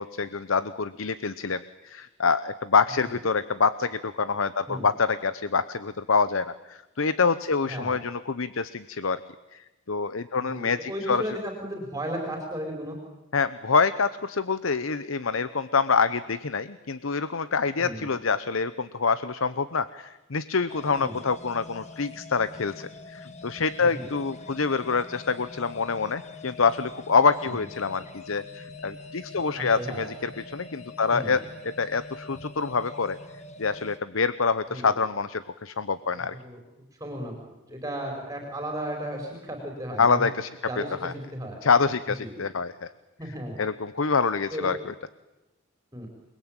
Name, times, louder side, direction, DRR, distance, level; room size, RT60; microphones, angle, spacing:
voice 1, 0.0-9.2 9.5-11.2 13.3-33.2 33.6-36.3 40.0-40.5 40.8-41.1 41.6-42.9 43.6-44.9, left 5 dB, 65° left, 15 dB, 0.9 m, -26 dB
voice 2, 10.4-13.0 17.8-18.1 21.0-21.2 23.9-24.1 27.5-27.7 29.3-30.3 31.1-31.4 34.7-34.9 36.0-36.6 36.9-40.3 40.7-41.6 42.2-42.4 43.2-43.6 44.5-44.7 45.9-46.1, equal, 15° right, 2 dB, 4.8 m, -35 dB
sound 1, 20.7-34.0, left 3 dB, 35° left, 1.8 m, -44 dB
28.5 x 21.0 x 9.0 m, 1.0 s
head